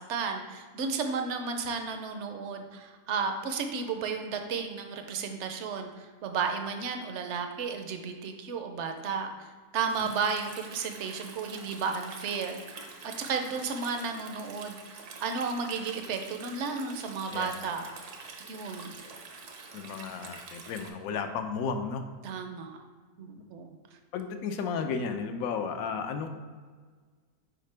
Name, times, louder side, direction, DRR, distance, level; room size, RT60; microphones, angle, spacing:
voice 1, 0.0-9.3 9.7-12.6 13.2-17.9 18.5-18.9 22.2-22.8 23.2-23.8, right 5 dB, 60° right, 5 dB, 0.8 m, -33 dB
Stream, 9.9-20.9, right 4 dB, 75° right, 1.4 m, -46 dB
voice 2, 19.7-22.0 23.4-23.5 24.1-26.3, left 5 dB, 70° left, 7 dB, 1.0 m, -33 dB
6.6 x 4.9 x 3.3 m, 1.5 s
omnidirectional pair, 1.7 m